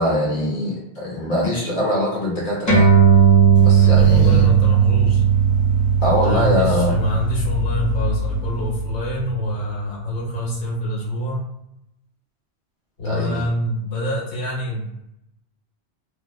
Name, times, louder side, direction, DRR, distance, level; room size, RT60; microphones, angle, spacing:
voice 1, 0.0-2.9 3.6-4.5 6.0-7.0 13.0-13.4, left 1 dB, 45° left, -4 dB, 1.0 m, -22 dB
sound 1, 2.7-9.5, right 8 dB, 25° left, 0.5 m, -17 dB
sound 2, 3.5-9.4, left 8 dB, 45° right, 0.8 m, -27 dB
voice 2, 4.0-5.2 6.2-11.5 13.0-14.9, equal, 80° left, -6 dB, 1.3 m, -25 dB
2.7 x 2.1 x 2.2 m, 0.81 s
omnidirectional pair, 1.1 m